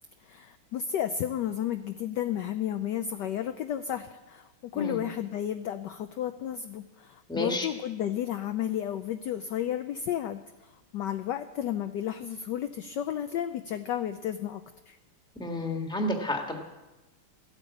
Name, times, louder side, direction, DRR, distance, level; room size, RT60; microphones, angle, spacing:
voice 1, 0.2-10.4 10.9-15.0, left 10 dB, 75° left, 9 dB, 1.0 m, -32 dB
voice 2, 7.3-7.7 15.3-16.6, left 1 dB, ahead, 2 dB, 1.4 m, -30 dB
14.5 x 9.0 x 8.3 m, 1.1 s
omnidirectional pair, 2.4 m